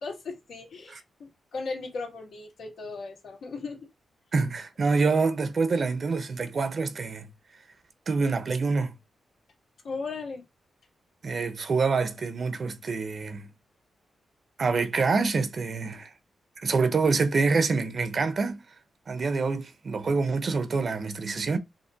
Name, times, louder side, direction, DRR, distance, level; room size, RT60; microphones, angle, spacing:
voice 1, 0.0-3.8 9.8-10.4, left 4 dB, 75° left, 2.2 m, -37 dB
voice 2, 4.3-7.3 8.1-8.9 11.2-13.5 14.6-16.1 16.6-18.6 19.1-21.6, right 4 dB, 45° right, 0.9 m, -26 dB
5.4 x 2.9 x 2.9 m
cardioid pair, 115°, 0 cm